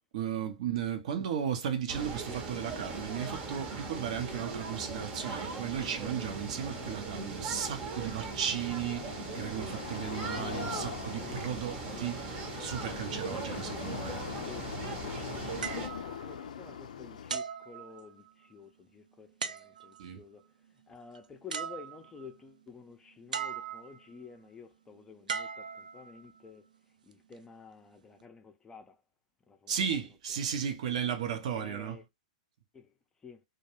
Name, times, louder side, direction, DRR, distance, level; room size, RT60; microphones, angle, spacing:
voice 1, 0.1-12.2 12.6-14.2 20.0-20.2 29.7-32.0, right 8 dB, 60° right, 0.7 m, -35 dB
sound 1, 1.9-15.9, right 4 dB, 30° right, 0.8 m, -39 dB
sound 2, 4.0-17.4, left 8 dB, 70° left, 0.4 m, -44 dB
voice 2, 10.3-10.7 11.2-11.6 11.8-12.2 13.4-13.7 14.3-14.7 16.0-26.7 27.0-29.0 29.5-30.0 30.3-30.5 31.5-32.0 32.7-32.9 33.2-33.4, left 5 dB, 15° left, 0.5 m, -51 dB
sound 3, 15.6-16.8 17.3-18.5 19.4-20.1 21.1-21.2 21.5-22.3 23.3-24.1 25.3-26.4 27.1-27.4, right 6 dB, 85° right, 0.3 m, -39 dB
2.2 x 2.2 x 3.0 m
hypercardioid pair, 115°, 4 cm